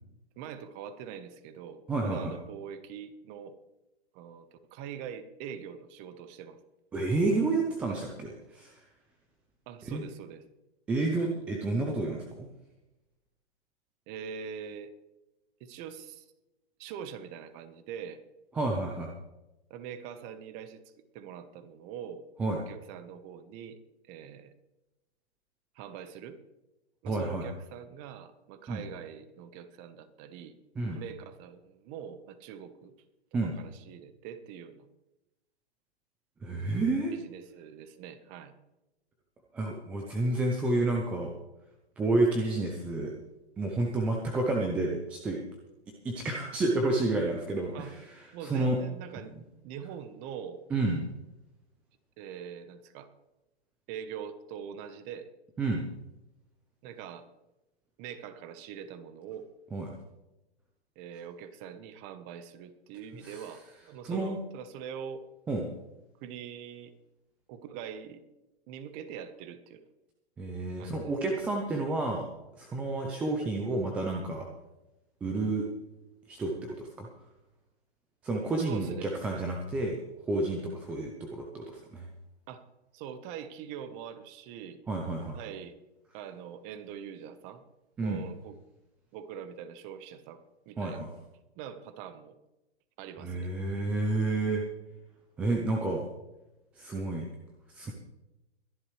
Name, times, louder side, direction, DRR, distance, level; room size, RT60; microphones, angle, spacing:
voice 1, 0.4-3.6 4.1-6.6 9.7-10.4 14.1-14.9 15.6-16.3 16.8-18.2 19.7-22.2 22.7-23.8 24.0-24.5 25.7-26.4 27.0-30.6 30.9-32.9 33.4-34.9 37.1-38.5 47.7-47.9 48.3-49.4 49.6-50.6 52.2-53.1 53.9-55.3 56.8-57.3 58.0-59.5 61.0-65.2 66.2-66.9 67.5-68.2 68.7-69.8 70.8-71.1 78.6-79.1 82.5-82.7 82.9-84.8 85.3-85.8 86.1-87.6 88.0-88.6 89.1-91.0 91.5-92.4 93.0-93.5, right 8 dB, 20° right, 12 dB, 1.1 m, -43 dB
voice 2, 1.9-2.3 6.9-8.8 9.9-10.0 10.9-12.5 18.5-19.1 22.4-22.6 27.1-27.5 28.7-28.8 30.8-31.0 33.3-33.5 36.4-37.1 39.5-41.3 42.0-43.1 43.6-45.4 46.0-48.0 48.4-48.8 50.7-51.0 55.6-55.8 59.7-59.9 63.2-63.4 64.0-64.4 65.5-65.7 70.4-72.3 72.6-74.5 75.2-75.6 76.3-77.1 78.2-80.0 80.3-82.1 84.9-85.4 88.0-88.3 90.8-91.1 93.2-94.6 95.4-96.0 96.8-97.3 97.7-97.9, right 2 dB, 5° right, 1 dB, 0.5 m, -30 dB
22.0 x 11.0 x 3.2 m, 0.97 s
hypercardioid pair, 145°, 34 cm